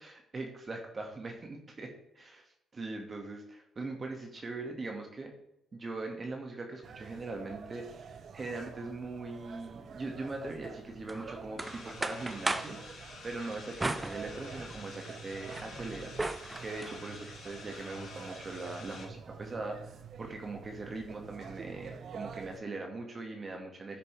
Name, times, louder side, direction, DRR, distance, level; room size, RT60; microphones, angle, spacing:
voice 1, 0.0-5.3 5.7-16.3 16.6-24.0, right 3 dB, 40° right, 2 dB, 2.0 m, -41 dB
sound 1, 6.8-22.6, right 6 dB, 60° right, 0.7 m, -48 dB
sound 2, 11.1-12.8 13.8-14.9 15.3-17.0, right 2 dB, 20° right, 0.7 m, -37 dB
sound 3, 11.6-19.1, left 3 dB, 75° left, 3.0 m, -49 dB
13.0 x 6.7 x 3.5 m, 0.81 s
supercardioid pair, 60°, 0 cm